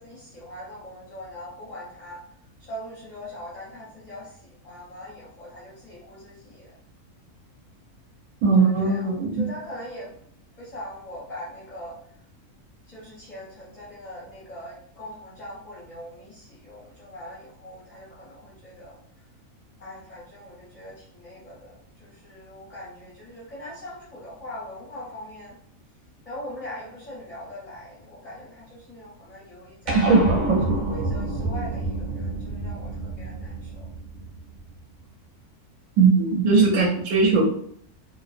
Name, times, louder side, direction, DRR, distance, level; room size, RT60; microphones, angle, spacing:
voice 1, 0.0-2.2 2.6-6.7 8.6-10.1 10.6-12.0 12.9-19.0 19.8-25.6 26.2-30.0 30.9-33.9, equal, 40° left, -8 dB, 0.6 m, -41 dB
voice 2, 8.4-9.4 29.9-30.6 36.0-37.5, right 4 dB, 75° right, -1 dB, 1.0 m, -19 dB
sound 1, 29.9-34.6, right 2 dB, 45° right, 0.7 m, -28 dB
2.5 x 2.0 x 2.4 m, 0.63 s
omnidirectional pair, 1.6 m